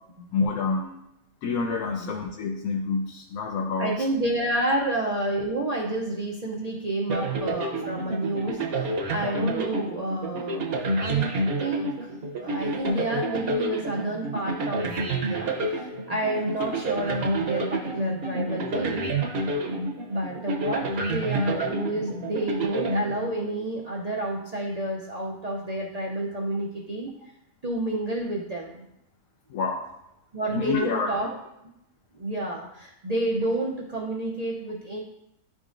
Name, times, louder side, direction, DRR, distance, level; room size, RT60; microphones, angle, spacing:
voice 1, 0.3-1.0 1.4-3.9 29.5-29.8 30.5-31.1, left 4 dB, 75° left, -1 dB, 1.1 m, -28 dB
voice 2, 3.8-11.3 11.6-12.1 12.4-19.9 20.1-27.3 27.6-28.8 30.3-31.3 32.1-35.0, right 1 dB, 75° right, -2 dB, 0.3 m, -30 dB
sound 1, 7.1-23.7, right 2 dB, 50° right, 0.8 m, -29 dB
10.0 x 3.7 x 2.5 m, 0.85 s
omnidirectional pair, 1.5 m